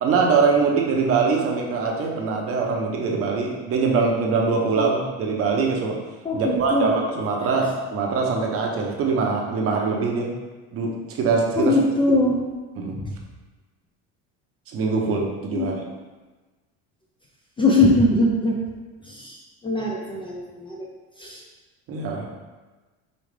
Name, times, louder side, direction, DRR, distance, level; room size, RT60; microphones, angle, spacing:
voice 1, 0.0-6.0 6.3-10.3 10.7-11.7 12.8-13.0 14.7-15.7 21.9-22.3, right 4 dB, 45° right, 0 dB, 0.8 m, -23 dB
voice 2, 6.2-6.9 11.6-12.4 15.5-15.7 17.6-18.6 19.1-19.4 19.6-20.9 21.2-21.4, left 2 dB, 15° left, -2 dB, 0.4 m, -21 dB
5.1 x 2.4 x 3.3 m, 1.2 s
supercardioid pair, 120°, 32 cm